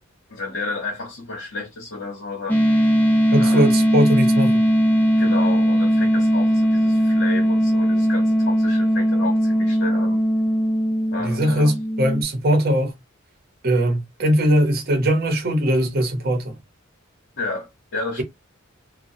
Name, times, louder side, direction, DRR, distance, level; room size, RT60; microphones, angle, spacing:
voice 1, 0.3-2.7 3.4-3.8 5.2-10.2 11.1-11.7 17.4-18.2, left 3 dB, 65° left, 0.9 m, -32 dB
sound 1, 2.5-12.2, equal, 10° left, 0.5 m, -19 dB
voice 2, 3.3-4.6 11.2-12.9 13.6-16.6, equal, 45° right, 0.9 m, -20 dB
2.8 x 2.2 x 2.6 m
head